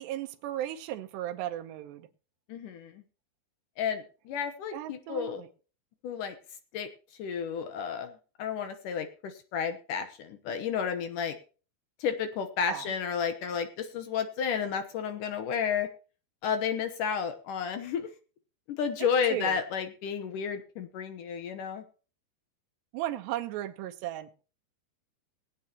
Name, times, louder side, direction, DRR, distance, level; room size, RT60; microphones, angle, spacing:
voice 1, 0.0-2.1 4.7-5.5 12.7-12.9 19.0-19.6 22.9-24.3, right 13 dB, 80° right, 3.0 m, -35 dB
voice 2, 2.5-3.0 3.8-5.4 6.0-6.4 6.7-6.9 7.2-8.1 8.4-11.4 12.0-15.9 16.4-18.1 18.7-21.8, left 7 dB, 70° left, 2.0 m, -32 dB
21.5 x 8.7 x 2.9 m
omnidirectional pair, 5.0 m